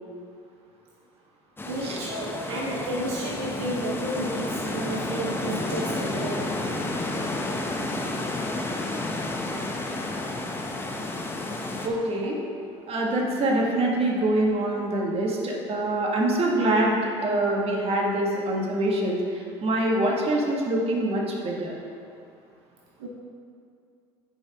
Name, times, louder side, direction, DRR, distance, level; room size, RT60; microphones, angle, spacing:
sound 1, 1.6-11.9, left 2 dB, 15° left, 1.0 m, -31 dB
voice 1, 1.6-6.9 23.0-23.1, right 1 dB, 80° right, -3 dB, 1.0 m, -32 dB
voice 2, 11.8-12.4 12.9-21.7, right 1 dB, 45° right, -1 dB, 1.8 m, -25 dB
10.0 x 5.6 x 3.6 m, 2.4 s
hypercardioid pair, 70°, 14 cm